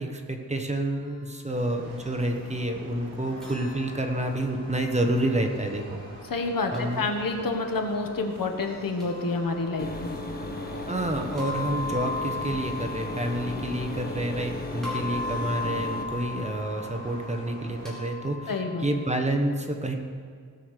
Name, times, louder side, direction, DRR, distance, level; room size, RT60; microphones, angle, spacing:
voice 1, 0.0-6.0 6.7-7.0 10.9-19.9, right 1 dB, 20° right, 3 dB, 1.1 m, -29 dB
sound 1, 1.5-18.0, right 1 dB, 45° right, 3.7 m, -45 dB
sound 2, 3.4-5.5 6.7-7.7 9.0-10.2 11.4-14.5 14.8-19.2, left 3 dB, ahead, 3.8 m, -38 dB
voice 2, 6.2-10.2 18.5-18.9, left 3 dB, 75° left, 4 dB, 1.5 m, -28 dB
sound 3, 9.8-16.0, left 2 dB, 25° left, 1.3 m, -36 dB
18.5 x 6.4 x 6.6 m, 2.1 s
wide cardioid pair, 140°, 34 cm